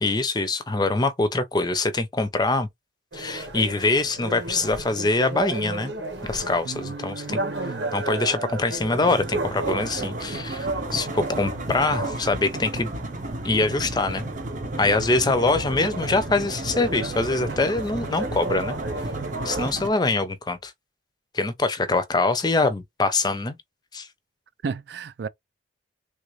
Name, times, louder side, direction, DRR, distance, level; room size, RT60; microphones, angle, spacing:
voice 1, 0.0-2.7 3.1-5.9 6.2-7.4 7.9-12.9 13.4-14.3 14.8-18.8 19.4-20.7 21.3-23.6 23.9-24.1, left 3 dB, 25° left, 0.5 m, -24 dB
sound 1, 3.1-19.7, right 2 dB, 85° right, 1.2 m, -34 dB
voice 2, 6.6-8.0 24.6-25.3, right 5 dB, 65° right, 0.4 m, -34 dB
sound 2, 8.9-19.9, right 2 dB, 45° right, 0.8 m, -33 dB
3.4 x 2.5 x 3.1 m
head